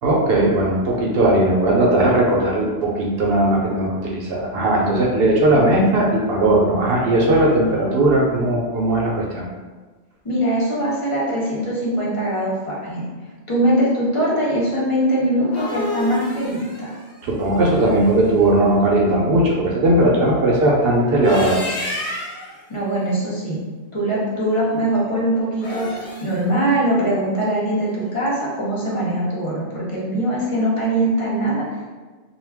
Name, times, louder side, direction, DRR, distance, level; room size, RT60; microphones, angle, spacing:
voice 1, 0.0-9.4 17.2-21.6, right 1 dB, 70° right, -2 dB, 0.8 m, -18 dB
voice 2, 10.2-13.0 13.5-16.9 22.7-23.6 23.9-31.9, right 1 dB, 35° left, -6 dB, 0.7 m, -22 dB
sound 1, 15.2-18.3 21.0-22.5 25.5-26.4, left 1 dB, 65° left, 1.0 m, -31 dB
2.3 x 2.2 x 3.3 m, 1.3 s
omnidirectional pair, 1.1 m